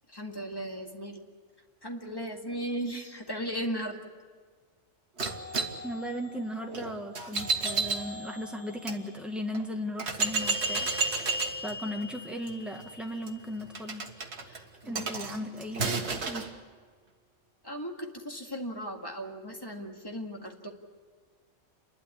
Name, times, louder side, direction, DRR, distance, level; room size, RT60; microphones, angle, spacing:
voice 1, 0.1-1.2 1.8-4.0 14.5-15.1 17.6-20.7, equal, 20° left, 2 dB, 2.0 m, -36 dB
sound 1, 5.2-9.0 9.5-9.6 10.0-16.5, right 3 dB, 60° right, 1.8 m, -33 dB
voice 2, 5.8-11.2 11.6-14.0 14.8-16.5, equal, ahead, 2 dB, 1.6 m, -37 dB
29.5 x 12.0 x 9.9 m, 1.5 s
omnidirectional pair, 1.3 m